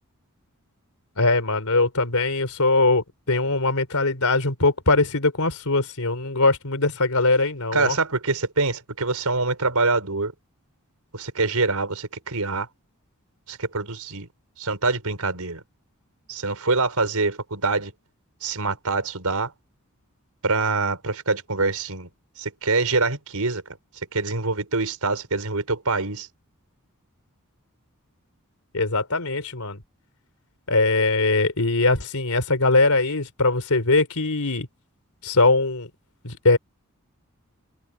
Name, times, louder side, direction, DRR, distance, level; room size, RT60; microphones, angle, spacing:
voice 1, 1.2-8.0 28.7-29.8 30.7-34.7 35.2-35.9 36.2-36.6, left 3 dB, 80° left, 3.5 m, -21 dB
voice 2, 7.7-10.3 11.1-12.7 13.5-14.3 14.6-15.6 16.3-17.9 18.4-19.5 20.4-22.1 22.4-23.6 24.1-26.3, right 3 dB, 90° right, 4.5 m, -25 dB
head